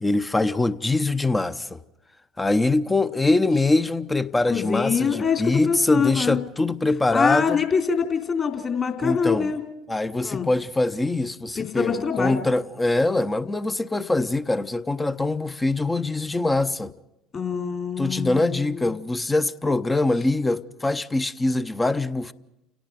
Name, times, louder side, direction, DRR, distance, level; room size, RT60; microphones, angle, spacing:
voice 1, 0.0-1.8 2.4-7.6 9.0-9.5 9.9-16.9 18.0-22.3, left 2 dB, 15° left, 0.8 m, -23 dB
voice 2, 4.5-6.4 7.1-9.6 10.2-10.5 11.6-12.4 17.3-18.9, left 6 dB, 35° left, 3.4 m, -24 dB
29.5 x 17.5 x 5.2 m
figure-of-eight pair, 65°, 0 cm